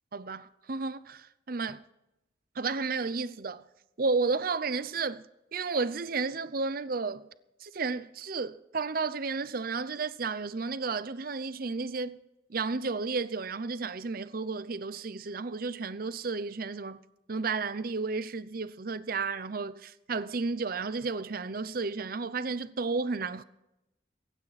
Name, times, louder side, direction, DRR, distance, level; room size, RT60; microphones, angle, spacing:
voice 1, 0.1-1.8 2.5-3.6 4.0-5.2 5.5-7.3 7.6-12.2 12.5-17.0 17.3-23.4, right 4 dB, 50° right, 0.7 m, -32 dB
23.5 x 9.4 x 4.1 m
head